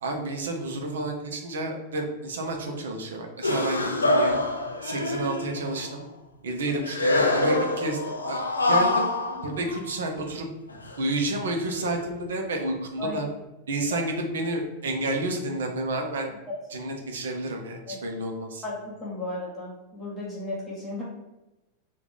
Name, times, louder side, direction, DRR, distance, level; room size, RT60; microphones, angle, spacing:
voice 1, 0.0-4.4 4.8-6.0 6.4-9.1 9.4-10.5 11.0-13.3 13.7-16.3 16.7-18.6, right 2 dB, 65° right, 2 dB, 0.6 m, -30 dB
sound 1, 3.4-5.9 6.9-10.2 10.7-11.0 11.8-12.1, left 2 dB, 80° left, 0.4 m, -26 dB
voice 2, 18.6-21.0, left 2 dB, 10° left, -6 dB, 1.3 m, -34 dB
3.0 x 2.3 x 3.7 m, 1.0 s
figure-of-eight pair, 90°, 0 cm